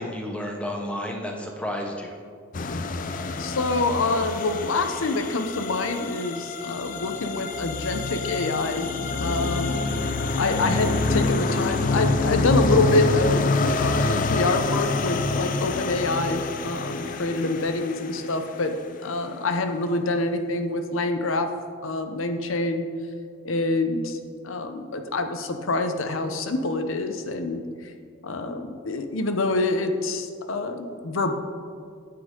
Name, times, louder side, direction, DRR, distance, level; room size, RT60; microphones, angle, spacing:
voice 1, 0.0-2.2, left 1 dB, 5° left, 1 dB, 0.8 m, -31 dB
sound 1, 2.5-18.7, left 3 dB, 40° left, 0.4 m, -26 dB
voice 2, 3.4-8.9 9.2-9.8 10.4-13.6 13.8-21.5 21.8-22.9 23.4-24.2 24.4-27.6 28.2-31.3, left 2 dB, 75° left, 7 dB, 0.7 m, -26 dB
9.7 x 7.7 x 3.7 m, 2.1 s
head